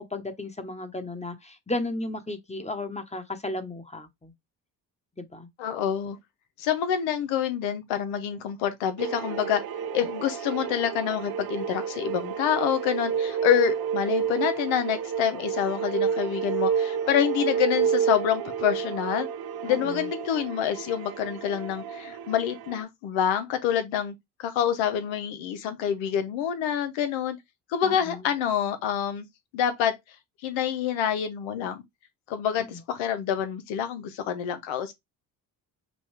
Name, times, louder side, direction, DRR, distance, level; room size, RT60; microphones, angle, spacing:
voice 1, 0.0-4.3 5.2-5.5 19.7-20.1 27.8-28.3 32.7-32.8, left 2 dB, 15° left, 1.1 m, -34 dB
voice 2, 5.6-6.2 6.6-9.6 9.9-19.3 19.6-27.4 27.7-29.3 29.5-30.0 30.4-31.8 32.3-34.9, left 9 dB, 90° left, 0.8 m, -27 dB
sound 1, 9.0-22.8, right 7 dB, 55° right, 0.7 m, -30 dB
5.2 x 2.3 x 3.3 m
supercardioid pair, 55°, 45 cm